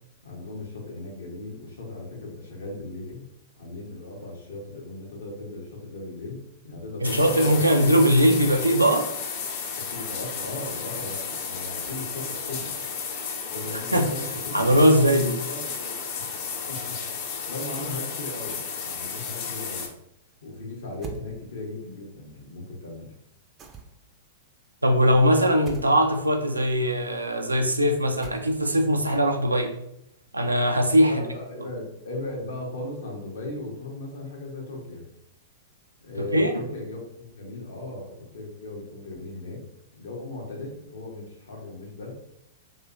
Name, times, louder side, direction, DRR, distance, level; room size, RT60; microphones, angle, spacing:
voice 1, 0.2-3.3 3.6-7.6 9.8-12.7 13.5-15.0 15.5-16.3 16.7-17.0 17.5-19.9 20.4-23.1 31.1-35.0 36.0-39.6 39.9-42.2, left 2 dB, 70° left, -1 dB, 1.0 m, -37 dB
sound 1, 7.0-19.9, left 6 dB, 50° left, 0.6 m, -33 dB
voice 2, 7.0-9.1 13.9-14.1 14.5-15.4 24.8-29.8 30.3-31.3 36.2-36.6, equal, 90° right, 5 dB, 0.4 m, -20 dB
sound 2, 21.0-21.3 23.6-24.1 25.7-25.9 28.2-28.8, right 6 dB, 25° right, 0.4 m, -40 dB
3.0 x 3.0 x 2.5 m, 0.79 s
figure-of-eight pair, 105°, 0 cm